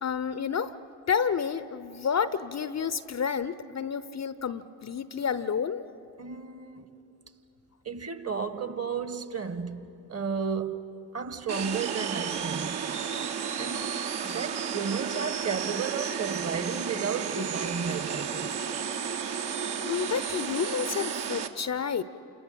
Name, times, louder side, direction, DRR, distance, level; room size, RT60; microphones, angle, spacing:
voice 1, 0.0-0.8 1.1-5.8 19.8-22.0, left 7 dB, 35° left, 0.8 m, -30 dB
voice 2, 6.2-6.9 7.8-13.0 13.6-14.0 14.2-18.6, right 6 dB, 30° right, 1.6 m, -33 dB
sound 1, 11.5-21.5, right 7 dB, 55° right, 1.7 m, -32 dB
29.0 x 28.0 x 5.8 m
figure-of-eight pair, 40°, 48 cm